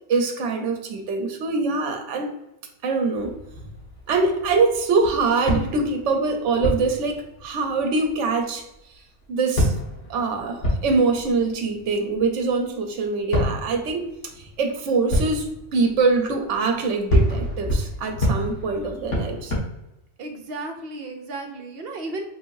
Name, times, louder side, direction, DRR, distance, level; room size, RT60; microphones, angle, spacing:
voice 1, 0.1-2.3 2.8-3.4 4.1-8.6 9.3-9.7 10.1-14.1 14.4-19.5, right 4 dB, 85° right, 4 dB, 1.0 m, -23 dB
sound 1, 3.1-8.8 9.2-9.3 9.5-12.7 13.3-19.6, equal, 80° left, 1.8 m, -28 dB
voice 2, 20.2-22.2, right 2 dB, 60° right, 4 dB, 0.9 m, -34 dB
4.6 x 3.5 x 2.6 m, 0.88 s
omnidirectional pair, 1.2 m